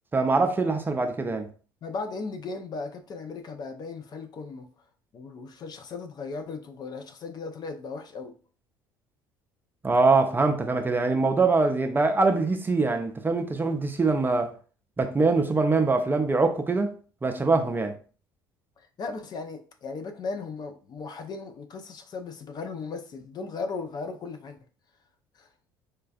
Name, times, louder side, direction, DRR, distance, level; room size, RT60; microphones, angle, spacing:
voice 1, 0.1-1.5 9.8-14.5 15.0-16.9 17.2-17.9, right 3 dB, 15° right, 0.5 m, -23 dB
voice 2, 1.8-4.7 5.1-8.3 18.8-24.6 25.3-25.5, left 4 dB, 35° left, 0.5 m, -37 dB
4.4 x 2.3 x 2.3 m
figure-of-eight pair, 60°, 12 cm